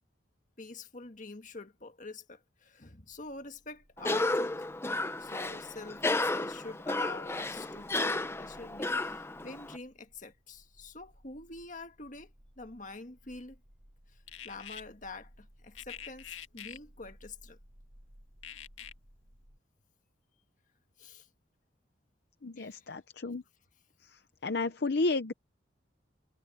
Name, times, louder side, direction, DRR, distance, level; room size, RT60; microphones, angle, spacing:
voice 1, 0.6-4.7 5.2-13.6 14.4-17.6 21.0-21.3 22.6-22.9, left 3 dB, 40° left, 1.7 m, -46 dB
sound 1, 3.1-19.6, equal, 55° right, 5.8 m, -61 dB
Cough, 4.0-9.8, left 2 dB, 15° left, 0.6 m, -33 dB
sound 2, 14.3-14.8 15.8-16.8 18.4-18.9, left 9 dB, 90° left, 2.0 m, -45 dB
voice 2, 22.4-23.4 24.0-25.3, left 3 dB, 55° left, 0.7 m, -32 dB
head